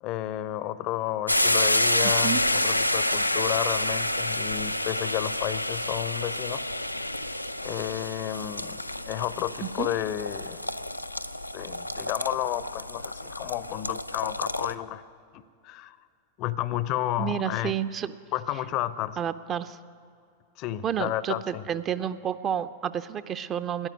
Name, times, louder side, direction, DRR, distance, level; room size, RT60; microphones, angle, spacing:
voice 1, 0.0-6.6 7.6-10.6 11.5-15.0 15.3-16.0 16.4-17.8 18.3-19.2 20.6-21.6, left 13 dB, 40° left, 17 dB, 0.6 m, -32 dB
sound 1, 1.3-14.7, left 1 dB, 85° left, 0.4 m, -28 dB
voice 2, 2.0-2.4 9.6-9.9 17.2-18.2 19.2-19.8 20.8-23.9, right 9 dB, 30° right, 13 dB, 0.6 m, -30 dB
14.5 x 10.5 x 9.3 m, 2.4 s
figure-of-eight pair, 90°, 0 cm